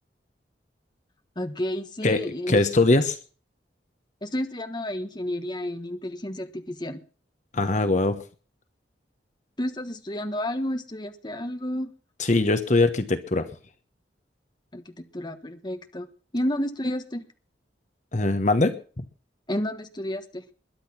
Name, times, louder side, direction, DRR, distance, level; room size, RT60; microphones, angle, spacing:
voice 1, 1.3-2.6 4.2-7.0 9.6-11.9 14.7-16.1 16.3-17.2 19.5-20.4, left 1 dB, 25° left, 7 dB, 1.4 m, -31 dB
voice 2, 2.0-3.2 7.5-8.2 12.2-13.5 18.1-19.0, left 2 dB, 45° left, 9 dB, 1.1 m, -22 dB
21.5 x 10.0 x 6.0 m, 0.41 s
head